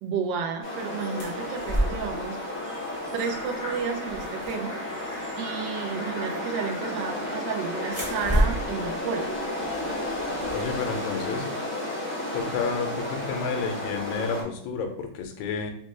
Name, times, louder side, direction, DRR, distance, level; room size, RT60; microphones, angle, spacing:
voice 1, 0.0-2.4 3.1-9.3, right 6 dB, 75° right, 4 dB, 1.2 m, -32 dB
sound 1, 0.6-14.4, left 1 dB, 10° left, 0.7 m, -33 dB
sound 2, 1.2-2.2 3.3-3.5 3.8-5.2 6.7-7.2 7.8-10.9, right 1 dB, 30° right, 0.6 m, -30 dB
sound 3, 3.2-8.6, left 1 dB, 45° left, 0.8 m, -44 dB
voice 2, 10.5-11.5 12.3-15.7, left 5 dB, 85° left, 6 dB, 1.3 m, -30 dB
4.0 x 2.1 x 3.1 m, 0.72 s
omnidirectional pair, 2.1 m